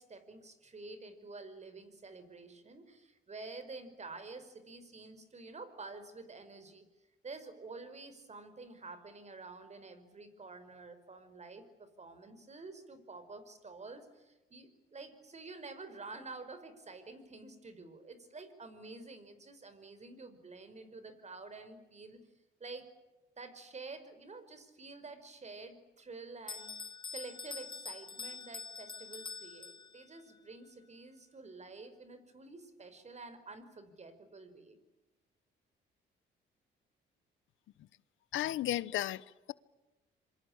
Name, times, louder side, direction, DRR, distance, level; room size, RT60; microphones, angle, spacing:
voice 1, 0.0-6.9 7.2-22.2 22.6-22.9 23.4-26.8 27.1-34.8, right 3 dB, 35° right, 5.4 m, -49 dB
Bell, 26.5-30.2, left 5 dB, 25° left, 0.9 m, -45 dB
voice 2, 38.3-39.5, left 13 dB, 80° left, 0.9 m, -34 dB
27.0 x 24.5 x 8.9 m
cardioid pair, 90°, 20 cm